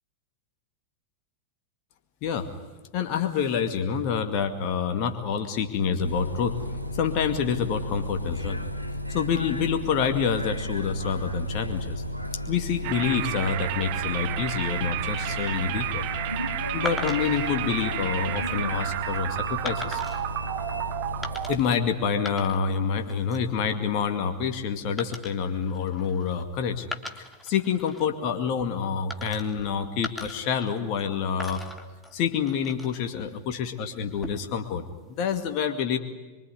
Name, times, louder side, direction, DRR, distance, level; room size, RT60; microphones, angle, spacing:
voice 1, 2.9-6.6 7.0-8.6 9.1-12.0 12.5-16.0 16.7-20.0 21.5-26.9 27.4-31.6 32.1-36.0, left 7 dB, 40° left, 6 dB, 2.2 m, -27 dB
Bus, 6.0-21.6, equal, 90° left, 1.7 m, -34 dB
sound 1, 12.8-21.6, right 15 dB, 45° right, 1.1 m, -32 dB
sound 2, 16.9-17.5 18.2-18.5 19.7-20.3 21.2-21.8 22.1-22.8 23.1-23.5 25.0-26.4 26.8-28.1 29.1-29.7 30.0-31.1 31.4-33.1 34.0-34.6, left 2 dB, 5° left, 2.5 m, -39 dB
24.5 x 24.0 x 9.9 m, 1.2 s
figure-of-eight pair, 90°, 0 cm